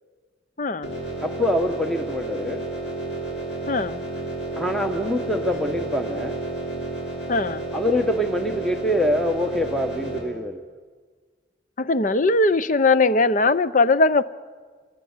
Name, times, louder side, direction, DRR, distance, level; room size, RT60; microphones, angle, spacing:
voice 1, 0.6-0.9 3.7-4.0 7.3-7.7 11.8-14.2, left 3 dB, 45° left, 0.7 m, -20 dB
sound 1, 0.8-10.2, right 2 dB, 85° left, 7.5 m, -31 dB
voice 2, 1.2-2.7 4.6-6.4 7.7-10.6, left 1 dB, ahead, 1.1 m, -25 dB
27.5 x 19.0 x 9.6 m
head